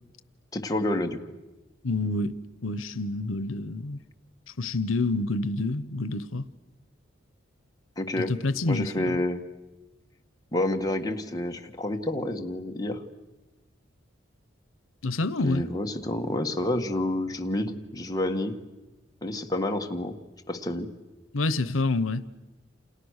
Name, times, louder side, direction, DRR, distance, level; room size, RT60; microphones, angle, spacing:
voice 1, 0.5-1.2 8.0-8.3 8.6-9.4 10.5-13.0 15.4-18.6 19.2-20.2 20.5-20.9, left 1 dB, 20° left, 1.7 m, -29 dB
voice 2, 1.8-2.3 2.6-4.0 4.6-6.5 8.3-9.2 15.0-15.6 21.3-22.3, left 2 dB, 90° left, 0.9 m, -28 dB
29.0 x 28.0 x 6.6 m
head